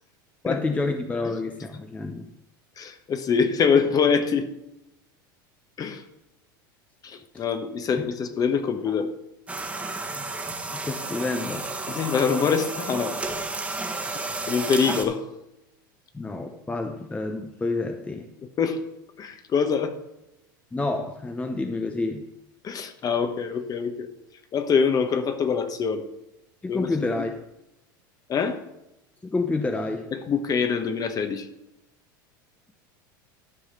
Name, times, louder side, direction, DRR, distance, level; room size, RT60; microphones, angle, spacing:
voice 1, 0.4-2.3 7.3-7.4 8.0-8.1 10.7-11.7 16.1-18.3 20.7-22.3 26.6-27.3 29.2-30.1, left 3 dB, 10° left, 6 dB, 0.8 m, -29 dB
voice 2, 2.8-4.5 5.8-6.0 7.0-9.1 11.9-13.2 14.1-15.3 18.4-18.8 19.2-20.0 22.6-24.1 24.5-26.1 26.7-26.9 27.2-27.3 28.3-28.6 30.1-31.5, left 6 dB, 35° left, 8 dB, 1.2 m, -25 dB
sound 1, 9.5-15.0, right 3 dB, 10° right, 1.4 m, -32 dB
12.5 x 4.9 x 5.7 m, 0.89 s
hypercardioid pair, 95°, 11 cm